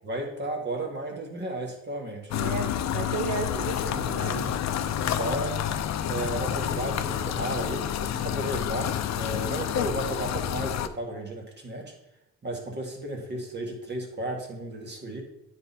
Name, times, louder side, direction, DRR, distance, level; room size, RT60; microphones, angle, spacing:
voice 1, 0.0-2.3 3.9-4.6 5.0-5.6 6.1-11.9 12.4-15.2, right 1 dB, 35° right, 1 dB, 2.0 m, -34 dB
sound 1, 2.3-10.9, left 10 dB, 65° left, 0.6 m, -29 dB
voice 2, 2.3-4.6, right 5 dB, 75° right, 1 dB, 1.0 m, -34 dB
9.4 x 4.0 x 4.1 m, 0.84 s
cardioid pair, 90°, 30 cm